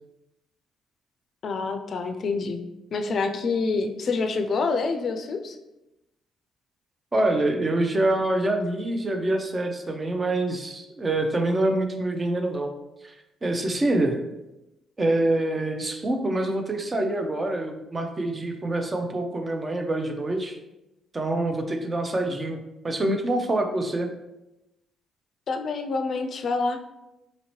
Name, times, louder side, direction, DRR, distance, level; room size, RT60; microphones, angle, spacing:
voice 1, 1.4-2.6 2.9-5.5 25.5-26.8, left 4 dB, 55° left, 6 dB, 0.4 m, -27 dB
voice 2, 7.1-12.7 13.0-13.2 13.4-14.2 15.0-20.6 21.1-22.6 22.8-24.1, right 2 dB, 25° right, 5 dB, 0.5 m, -25 dB
4.1 x 2.8 x 3.0 m, 0.94 s
cardioid pair, 90°, 0 cm